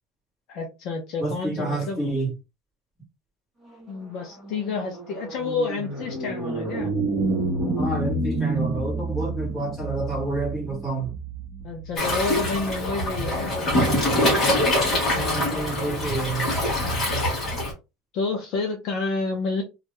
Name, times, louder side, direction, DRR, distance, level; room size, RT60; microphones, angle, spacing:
voice 1, 0.5-2.1 3.9-6.9 11.6-14.0 18.1-19.6, left 4 dB, 45° left, 0.6 m, -29 dB
voice 2, 1.2-2.3 7.7-11.1 15.1-16.5, right 2 dB, 5° left, 1.4 m, -29 dB
sound 1, 3.8-13.3, right 2 dB, 15° right, 1.2 m, -30 dB
Waves surf, 12.0-17.7, left 1 dB, 20° left, 1.1 m, -24 dB
2.6 x 2.4 x 3.2 m
cardioid pair, 180°, 0 cm